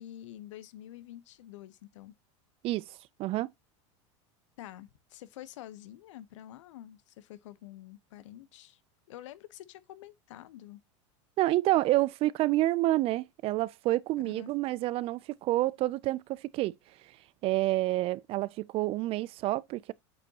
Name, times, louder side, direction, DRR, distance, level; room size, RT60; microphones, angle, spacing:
voice 1, 0.0-2.1 4.6-8.8 9.1-10.8 14.2-14.5, left 13 dB, 80° left, 0.8 m, -48 dB
voice 2, 11.4-16.7 17.4-19.9, right 17 dB, 40° right, 0.3 m, -28 dB
8.7 x 5.2 x 2.8 m
supercardioid pair, 120°, 16 cm